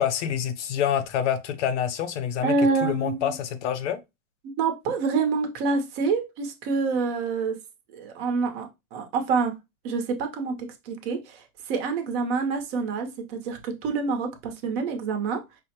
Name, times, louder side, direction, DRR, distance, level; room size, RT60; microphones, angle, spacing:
voice 1, 0.0-2.5 2.8-4.0, left 9 dB, 55° left, 0.6 m, -27 dB
voice 2, 2.4-3.4 4.4-7.6 7.9-9.5 9.8-10.6 10.8-15.4, right 4 dB, 45° right, 0.9 m, -27 dB
4.9 x 2.1 x 2.9 m
hypercardioid pair, 120°, 43 cm